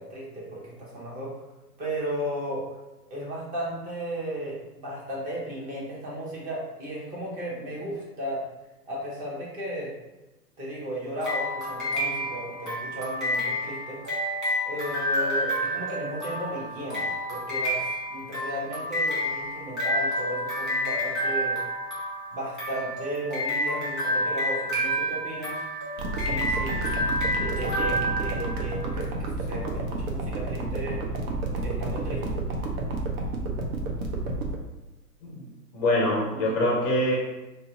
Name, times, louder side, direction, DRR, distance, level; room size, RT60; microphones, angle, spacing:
voice 1, 0.0-1.3 1.8-2.6 3.1-8.4 8.9-9.9 10.6-14.0 14.6-21.6 22.3-25.6 26.2-31.0 31.6-32.4, right 1 dB, 15° right, -5 dB, 0.7 m, -35 dB
sound 1, 11.2-28.9, equal, ahead, 1.2 m, -29 dB
sound 2, 26.0-34.6, right 3 dB, 60° right, 0.7 m, -30 dB
voice 2, 35.7-37.2, left 1 dB, 25° left, -3 dB, 0.5 m, -24 dB
2.6 x 2.1 x 3.6 m, 1.0 s
hypercardioid pair, 115°, 50 cm